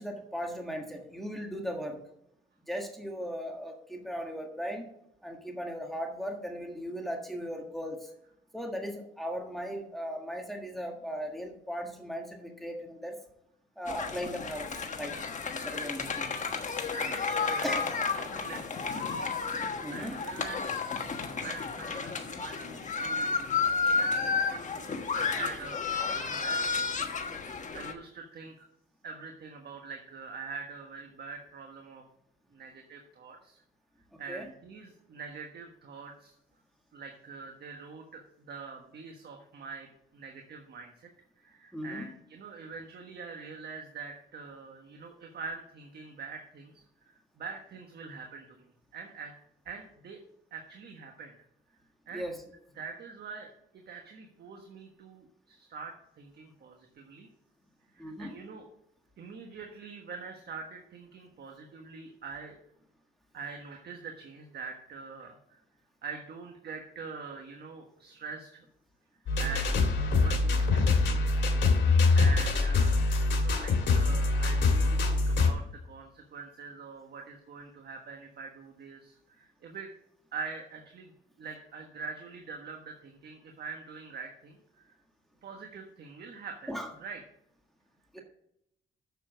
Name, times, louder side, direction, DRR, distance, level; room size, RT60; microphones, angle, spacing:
voice 1, 0.0-2.0 2.7-4.9 5.2-8.1 8.5-13.2 13.8-15.2 15.6-16.4 17.6-17.8 19.8-20.2 34.1-34.5 41.7-42.1 52.1-52.4 58.0-58.4 86.7-86.9 88.1-88.2, equal, ahead, 2 dB, 1.6 m, -37 dB
sound 1, 13.9-27.9, left 5 dB, 40° left, 1.3 m, -32 dB
voice 2, 16.8-17.7 18.2-19.3 19.9-20.7 21.0-28.7 29.0-32.0 32.5-33.6 34.2-36.3 36.9-41.1 41.4-48.7 48.9-49.3 49.6-50.2 50.5-51.4 52.1-52.2 52.7-57.3 57.9-58.7 59.2-62.6 63.3-65.6 66.0-68.6 69.4-71.3 72.1-73.0 73.3-79.9 80.3-81.1 81.4-84.9 85.4-86.7 87.0-87.2, right 5 dB, 55° right, 3 dB, 1.4 m, -44 dB
sound 2, 69.3-75.5, left 3 dB, 65° left, 2.4 m, -24 dB
7.1 x 6.9 x 6.2 m, 0.77 s
cardioid pair, 90°, 20 cm